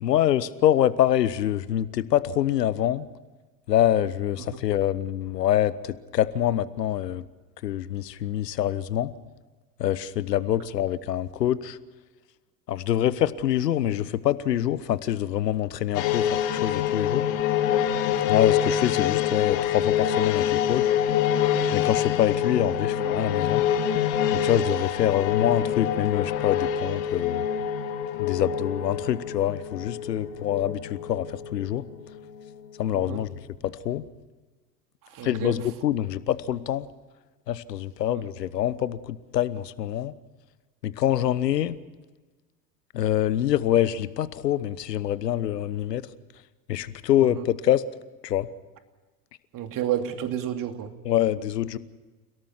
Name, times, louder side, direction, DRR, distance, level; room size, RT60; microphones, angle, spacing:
voice 1, 0.0-3.1 3.7-5.7 6.1-7.2 7.6-9.1 9.8-11.8 12.7-17.2 18.3-20.9 21.7-23.6 24.3-27.4 28.2-31.3 31.5-31.8 32.8-33.3 33.6-34.0 35.2-36.9 37.5-40.1 40.8-41.8 42.9-46.0 46.7-47.8 48.2-48.5 51.0-51.8, left 11 dB, 80° left, 17 dB, 1.2 m, -25 dB
sound 1, 15.9-32.7 33.0-33.1, left 9 dB, 55° left, 2.3 m, -26 dB
voice 2, 35.0-35.7 38.1-38.2 47.2-47.4 49.5-50.9, right 10 dB, 40° right, 6 dB, 2.8 m, -31 dB
29.5 x 18.0 x 5.9 m, 1.3 s
hypercardioid pair, 80°, 48 cm